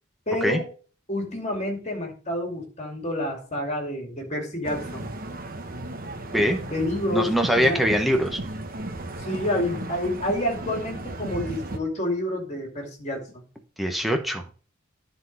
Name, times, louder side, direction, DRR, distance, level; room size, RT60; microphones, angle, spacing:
voice 1, 0.3-0.7 1.1-5.1 6.6-7.3 7.6-7.8 9.2-13.4, left 1 dB, 35° left, 2 dB, 2.5 m, -29 dB
sound 1, 4.6-11.8, right 2 dB, 45° right, 1.0 m, -35 dB
voice 2, 7.1-8.4 13.8-14.5, equal, ahead, 4 dB, 1.0 m, -23 dB
10.5 x 4.0 x 5.4 m, 0.39 s
head